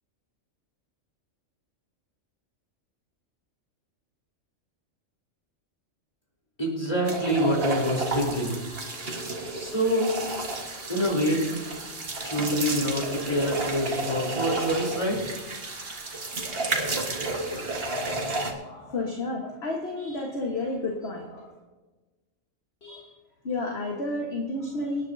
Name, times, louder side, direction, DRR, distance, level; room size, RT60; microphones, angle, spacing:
voice 1, 6.6-8.6 9.6-10.1 10.9-11.5 12.2-15.2, equal, 25° left, -2 dB, 3.7 m, -26 dB
sound 1, 7.1-18.5, right 2 dB, 45° right, 1.7 m, -32 dB
voice 2, 18.6-21.5 22.8-23.1 23.4-25.1, left 2 dB, 50° left, 0 dB, 1.6 m, -31 dB
25.5 x 9.7 x 2.7 m, 1.2 s
omnidirectional pair, 1.4 m